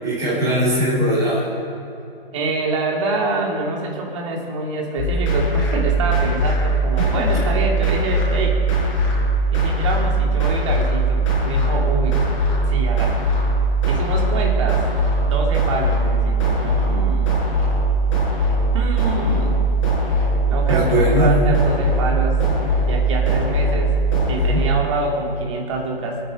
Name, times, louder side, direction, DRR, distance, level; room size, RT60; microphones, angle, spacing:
voice 1, 0.0-1.5 20.7-21.4 24.3-24.7, equal, 10° right, -7 dB, 4.7 m, -20 dB
voice 2, 2.3-8.6 9.5-12.2 12.7-13.2 13.9-14.9 15.2-17.4 18.7-19.6 20.5-22.4 22.9-24.0 24.3-26.2, right 3 dB, 30° right, 0 dB, 2.8 m, -26 dB
sound 1, 5.0-24.7, right 2 dB, 30° left, 4.9 m, -20 dB
27.5 x 9.7 x 5.3 m, 2.9 s
hypercardioid pair, 160°, 29 cm